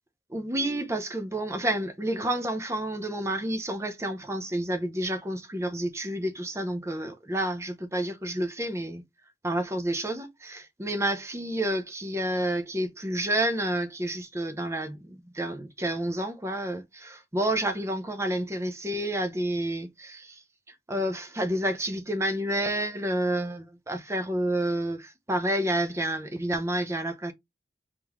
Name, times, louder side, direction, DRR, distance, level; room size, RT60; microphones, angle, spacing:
voice 1, 0.3-9.0 9.4-20.4 20.9-27.3, right 1 dB, 15° right, 0.6 m, -29 dB
3.7 x 3.6 x 3.0 m
head